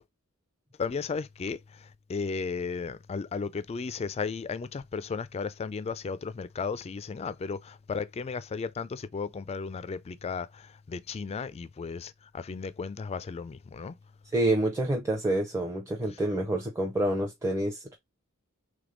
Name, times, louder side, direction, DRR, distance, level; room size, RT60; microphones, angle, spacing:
voice 1, 0.8-1.6 2.1-13.9, left 5 dB, 30° left, 0.3 m, -34 dB
voice 2, 14.3-18.0, right 1 dB, 15° right, 0.6 m, -28 dB
3.4 x 3.3 x 3.8 m
head